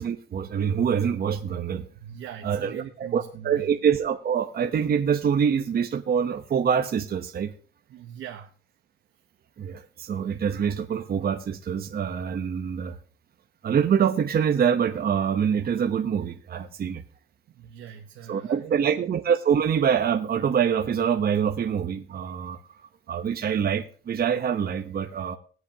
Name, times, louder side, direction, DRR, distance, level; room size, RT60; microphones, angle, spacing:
voice 1, 0.0-1.8 2.4-7.5 9.6-13.0 13.6-17.0 18.3-22.6 23.1-25.4, right 7 dB, 50° right, 6 dB, 1.0 m, -25 dB
voice 2, 1.9-3.7 7.9-8.5 17.5-18.9, right 9 dB, 80° right, 3 dB, 1.1 m, -41 dB
19.5 x 8.1 x 2.9 m, 0.40 s
cardioid pair, 90°, 20 cm